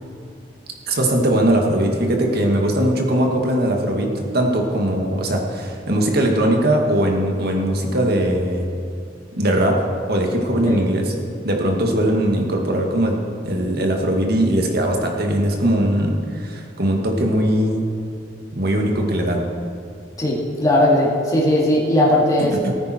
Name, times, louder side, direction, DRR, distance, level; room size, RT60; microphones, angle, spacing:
voice 1, 0.9-8.7 9.4-9.8 10.1-11.1 11.4-13.2 13.4-17.8 18.5-19.4 22.6-22.7, right 1 dB, 60° right, 1 dB, 2.0 m, -20 dB
voice 2, 20.2-22.6, left 1 dB, 20° left, -4 dB, 2.4 m, -18 dB
18.5 x 9.5 x 4.5 m, 2.5 s
head